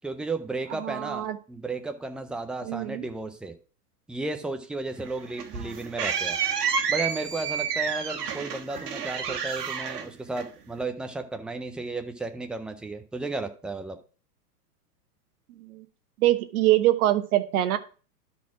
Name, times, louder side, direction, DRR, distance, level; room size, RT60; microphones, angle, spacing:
voice 1, 0.0-3.5 4.1-6.4 6.9-14.0, right 3 dB, ahead, 6 dB, 0.4 m, -34 dB
voice 2, 0.8-1.4 2.6-3.0 15.6-15.8 16.2-17.8, right 14 dB, 65° right, 8 dB, 1.0 m, -24 dB
sound 1, 5.0-10.8, right 7 dB, 80° right, 1.5 m, -30 dB
12.0 x 4.3 x 4.7 m, 0.38 s
hypercardioid pair, 120°, 46 cm